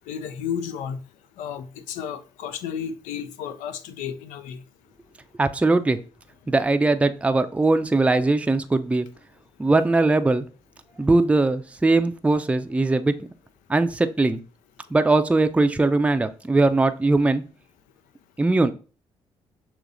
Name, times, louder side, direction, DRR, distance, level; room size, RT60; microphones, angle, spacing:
voice 1, 0.1-1.0 1.4-4.6, left 8 dB, 85° left, 0.4 m, -32 dB
voice 2, 5.3-6.0 6.5-9.1 9.6-10.5 11.0-13.1 13.7-14.4 14.9-17.4 18.4-18.7, right 2 dB, 10° right, 0.4 m, -20 dB
6.1 x 2.8 x 2.6 m
supercardioid pair, 50°, 13 cm